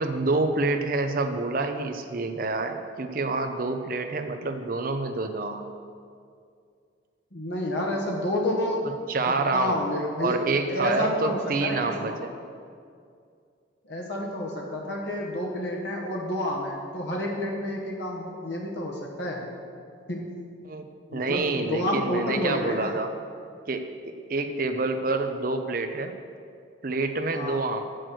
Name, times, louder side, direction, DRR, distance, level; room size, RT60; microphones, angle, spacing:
voice 1, 0.0-5.7 9.1-9.9 10.2-12.3 20.6-20.9 21.1-23.1 23.7-26.2 26.8-27.8, right 3 dB, 45° right, 6 dB, 0.6 m, -27 dB
voice 2, 7.3-8.9 9.3-10.4 10.7-12.2 13.8-19.4 20.1-20.3 21.1-22.9 27.3-27.6, left 1 dB, 65° left, -2 dB, 1.3 m, -29 dB
7.8 x 6.2 x 6.2 m, 2.3 s
head